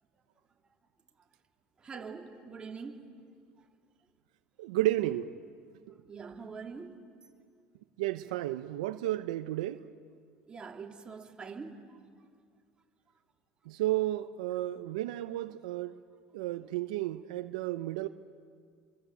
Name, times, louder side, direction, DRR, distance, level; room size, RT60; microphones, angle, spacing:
voice 1, 1.8-3.1 6.1-7.0 10.5-11.9, right 5 dB, 25° right, 1 dB, 3.6 m, -44 dB
voice 2, 4.6-5.3 5.9-6.0 8.0-9.8 13.7-16.0 16.3-18.1, right 15 dB, 90° right, 10 dB, 0.9 m, -32 dB
27.5 x 23.5 x 8.3 m, 2.1 s
supercardioid pair, 105°, 4 cm